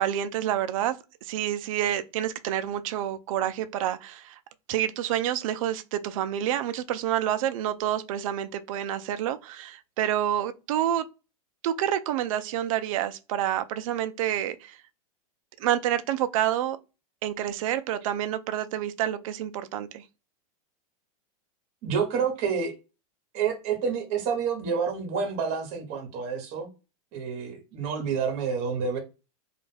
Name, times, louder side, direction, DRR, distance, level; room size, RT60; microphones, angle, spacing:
voice 1, 0.0-4.4 4.7-11.0 11.6-14.8 15.6-16.8 17.2-20.0, right 11 dB, 65° right, 0.4 m, -28 dB
voice 2, 21.8-22.7 23.3-26.7 27.1-29.0, right 6 dB, 40° right, 1.0 m, -28 dB
2.4 x 2.2 x 3.2 m
supercardioid pair, 150°, 19 cm